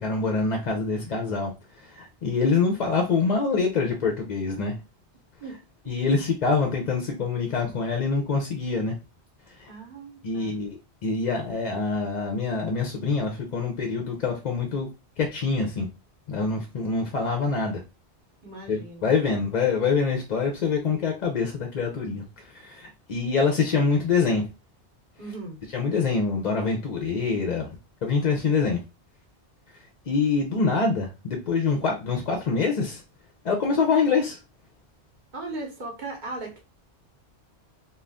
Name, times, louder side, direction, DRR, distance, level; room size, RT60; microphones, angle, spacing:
voice 1, 0.0-4.8 5.9-9.0 9.6-9.7 10.2-14.9 15.2-15.9 16.3-17.8 18.7-24.5 25.7-28.8 30.1-33.0 33.4-34.4, left 4 dB, 50° left, 0.6 m, -25 dB
voice 2, 9.7-10.6 18.4-19.1 25.2-25.6 35.3-36.6, right 2 dB, 50° right, 0.9 m, -37 dB
2.5 x 2.3 x 3.3 m
omnidirectional pair, 1.1 m